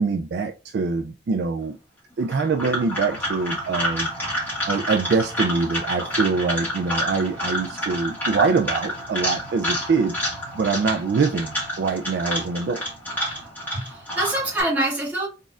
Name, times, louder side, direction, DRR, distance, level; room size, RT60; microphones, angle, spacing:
voice 1, 0.0-1.8 2.2-4.1 4.4-12.8, right 4 dB, 60° right, 5 dB, 0.3 m, -24 dB
sound 1, 2.2-14.6, equal, 10° left, 2.0 m, -29 dB
voice 2, 13.3-15.3, right 1 dB, 10° right, -7 dB, 1.8 m, -26 dB
4.1 x 3.6 x 2.4 m, 0.32 s
head